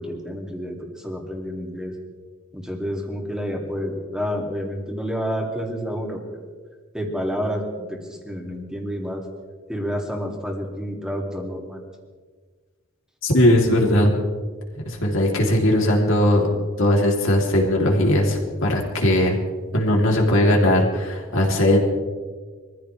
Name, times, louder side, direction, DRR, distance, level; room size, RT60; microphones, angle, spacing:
voice 1, 0.0-1.9 2.5-6.5 6.9-9.2 9.7-11.8, equal, 5° right, 0 dB, 2.7 m, -29 dB
voice 2, 13.2-14.1 14.8-16.5 16.8-19.4 19.7-21.8, left 1 dB, 70° left, 0 dB, 3.3 m, -19 dB
25.0 x 15.0 x 3.4 m, 1.5 s
head